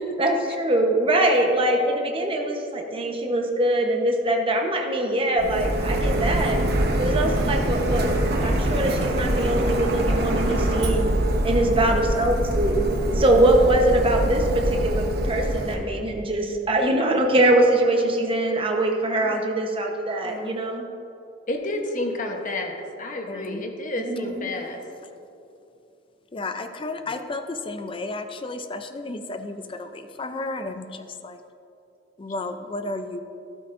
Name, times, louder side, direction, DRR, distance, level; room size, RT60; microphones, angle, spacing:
voice 1, 0.2-6.6 7.0-8.1 8.4-11.1 11.4-12.8 13.1-20.8 24.0-24.5, right 1 dB, 30° right, 1 dB, 1.0 m, -22 dB
Printer, 5.4-15.7, right 1 dB, 55° right, 1.0 m, -24 dB
voice 2, 20.2-20.6 23.3-23.6 26.3-31.4 32.2-33.2, left 2 dB, 30° left, 8 dB, 0.5 m, -33 dB
voice 3, 21.5-24.8, left 1 dB, 45° left, 3 dB, 1.1 m, -30 dB
12.5 x 12.5 x 2.6 m, 2.7 s
head